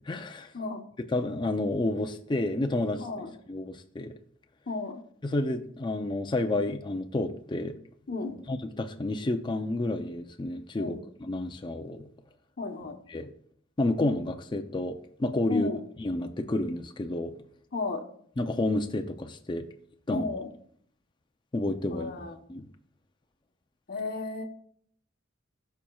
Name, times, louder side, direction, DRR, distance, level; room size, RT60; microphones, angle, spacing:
voice 1, 0.1-0.5 1.1-3.1 3.5-4.2 5.2-7.8 8.5-12.1 13.1-13.3 13.8-15.7 16.0-17.3 18.4-19.7 20.1-20.4 21.5-22.2 22.5-22.7, left 2 dB, 25° left, 5 dB, 0.5 m, -30 dB
voice 2, 3.0-3.3 4.7-5.0 8.1-8.4 10.8-11.0 12.6-13.0 15.5-15.8 17.7-18.0 20.1-20.5 21.9-22.4 23.9-24.4, left 3 dB, 50° left, 4 dB, 1.0 m, -33 dB
13.5 x 5.6 x 2.3 m, 0.62 s
head